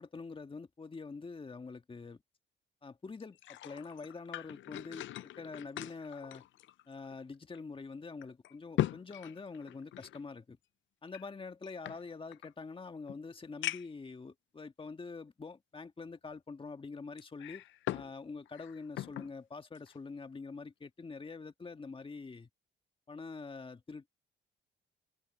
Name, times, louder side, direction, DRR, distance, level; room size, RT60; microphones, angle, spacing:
voice 1, 0.0-2.2 2.8-6.4 6.9-10.6 11.0-17.6 17.9-22.5 23.1-24.1, left 4 dB, 25° left, 1.8 m, -45 dB
sound 1, 3.2-7.2 7.5-7.6 8.2-10.2 11.1-12.5 13.1-13.2 13.6-14.1 14.8-14.9 17.2-18.1 18.5-19.3 19.8-20.0, left 13 dB, 75° left, 0.6 m, -40 dB
open air
cardioid pair, 90°, 20 cm